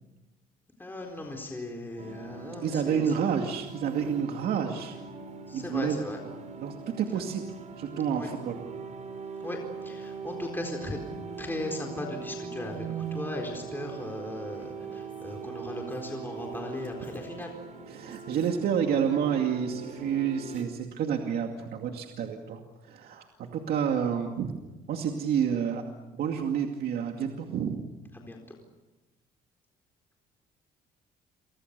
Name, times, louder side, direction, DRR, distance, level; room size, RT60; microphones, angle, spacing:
voice 1, 0.8-3.1 5.5-6.2 7.1-7.2 8.1-8.3 9.4-11.0 11.4-17.5 28.1-28.6, left 2 dB, 10° left, 1 dB, 4.2 m, -37 dB
sound 1, 2.0-20.6, right 5 dB, 45° right, 5.1 m, -41 dB
voice 2, 2.6-4.9 5.5-6.0 6.6-8.6 17.9-24.5 24.9-25.8 26.1-27.9, right 7 dB, 65° right, 3 dB, 2.4 m, -29 dB
Female speech woman speaking, 14.4-19.5, left 1 dB, 30° left, 7.1 m, -58 dB
29.5 x 24.5 x 6.8 m, 1.1 s
cardioid pair, 110°, 17 cm